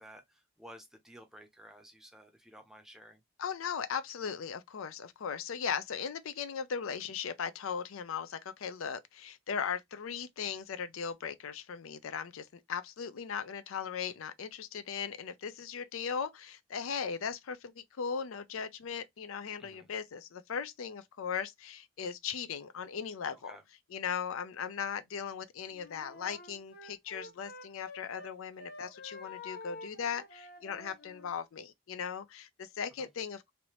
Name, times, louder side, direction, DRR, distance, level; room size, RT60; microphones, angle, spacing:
voice 1, 0.0-3.2 19.6-19.9 23.4-23.6 33.0-33.1, equal, ahead, 0.6 m, -53 dB
voice 2, 3.4-23.5 23.9-33.5, left 7 dB, 85° left, 0.5 m, -38 dB
Wind instrument woodwind instrument, 25.7-28.3 28.6-31.3, left 3 dB, 50° left, 1.1 m, -48 dB
3.3 x 2.6 x 2.9 m
head